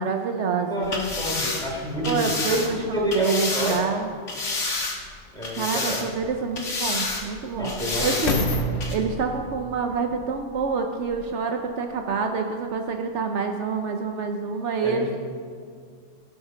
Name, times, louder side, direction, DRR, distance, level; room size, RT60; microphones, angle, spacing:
voice 1, 0.0-0.9 2.0-4.1 5.5-8.5 8.9-15.2, right 5 dB, 70° right, 4 dB, 1.0 m, -27 dB
voice 2, 0.5-2.3 2.7-3.9 5.3-6.0 7.6-8.2 14.8-15.1, left 1 dB, 5° left, -4 dB, 3.1 m, -29 dB
sound 1, 0.8-3.8 4.3-5.1 5.4-6.3 6.6-7.2 7.6-8.4 8.8-8.9, left 3 dB, 80° left, 1.8 m, -29 dB
sound 2, 5.2-5.3 6.1-11.4 12.0-12.1, left 1 dB, 50° left, 1.1 m, -31 dB
16.5 x 5.7 x 5.7 m, 2.1 s
omnidirectional pair, 1.3 m